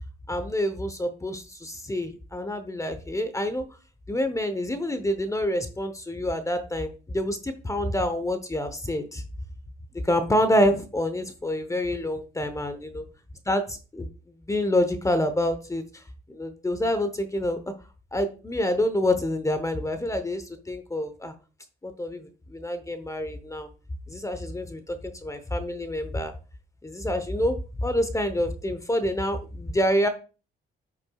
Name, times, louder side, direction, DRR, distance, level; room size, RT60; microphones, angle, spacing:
voice 1, 0.3-3.6 4.1-9.2 10.0-13.0 13.5-14.1 14.5-16.0 16.3-17.6 18.1-21.3 21.8-23.7 24.1-25.0 25.2-26.3 26.8-30.1, left 1 dB, 15° left, 9 dB, 0.9 m, -27 dB
9.0 x 6.0 x 2.3 m, 0.34 s
cardioid pair, 90°, 20 cm